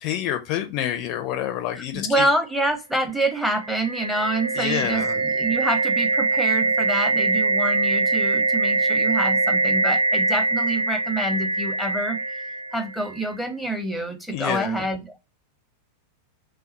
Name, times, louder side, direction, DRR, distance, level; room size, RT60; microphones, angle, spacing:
voice 1, 0.0-2.3 4.6-5.1 14.3-14.8, left 11 dB, 45° left, 0.4 m, -28 dB
voice 2, 1.9-12.4 12.7-15.2, right 1 dB, ahead, 0.7 m, -27 dB
sound 1, 3.4-13.2, right 2 dB, 80° right, 0.5 m, -23 dB
3.4 x 2.3 x 4.0 m
figure-of-eight pair, 90°, 0 cm